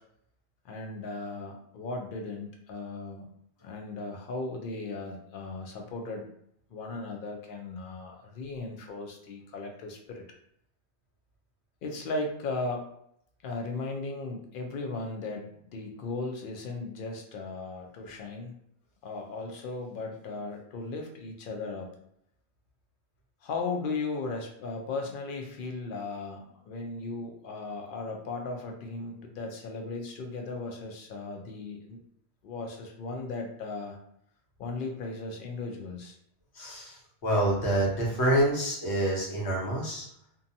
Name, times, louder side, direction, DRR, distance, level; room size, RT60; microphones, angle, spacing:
voice 1, 0.6-3.3 3.6-6.3 6.7-10.2 11.8-12.8 13.4-18.5 19.0-21.9 23.4-32.0 32.4-34.0 34.6-36.2, left 3 dB, 60° left, 2 dB, 0.7 m, -36 dB
voice 2, 36.5-40.1, right 1 dB, 90° left, -3 dB, 1.1 m, -27 dB
2.6 x 2.2 x 2.6 m, 0.71 s
omnidirectional pair, 1.1 m